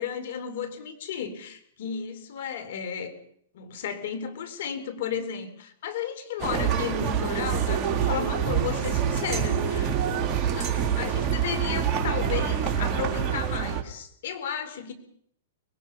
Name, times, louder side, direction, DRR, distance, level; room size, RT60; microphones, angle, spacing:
voice 1, 0.0-3.1 3.5-14.9, left 8 dB, 65° left, 9 dB, 4.4 m, -34 dB
sound 1, 6.4-13.8, right 8 dB, 30° right, 2.9 m, -26 dB
25.0 x 21.5 x 5.6 m, 0.65 s
hypercardioid pair, 120°, 0 cm